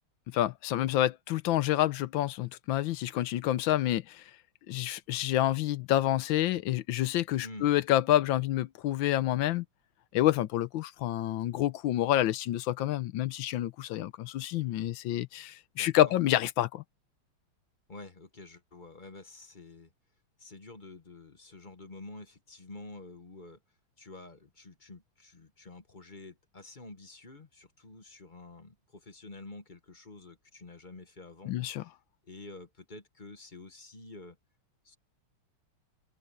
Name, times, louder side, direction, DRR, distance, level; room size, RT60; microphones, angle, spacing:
voice 1, 0.3-4.2 4.7-9.6 10.1-16.8 31.5-31.8, left 13 dB, 70° left, 1.3 m, -28 dB
voice 2, 7.4-7.7 15.8-16.1 17.9-19.9 20.4-23.6 24.0-31.9 32.2-34.4 34.8-35.0, left 2 dB, 30° left, 1.1 m, -49 dB
omnidirectional pair, 2.4 m